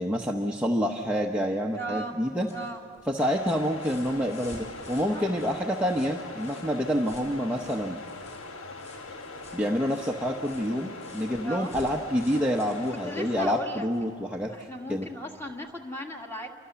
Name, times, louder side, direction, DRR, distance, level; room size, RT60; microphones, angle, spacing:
voice 1, 0.0-2.5 3.1-8.0 9.5-15.1, equal, 5° right, -1 dB, 0.9 m, -28 dB
voice 2, 1.7-2.1 2.5-2.8 5.1-5.3 11.4-11.7 13.0-13.9 14.5-16.5, right 1 dB, 10° left, 1 dB, 1.9 m, -36 dB
sound 1, 2.3-14.1 15.4-15.5, left 1 dB, 30° left, 6.3 m, -52 dB
sound 2, 3.2-13.5, left 3 dB, 75° left, 1.4 m, -41 dB
29.0 x 24.5 x 6.9 m, 2.7 s
head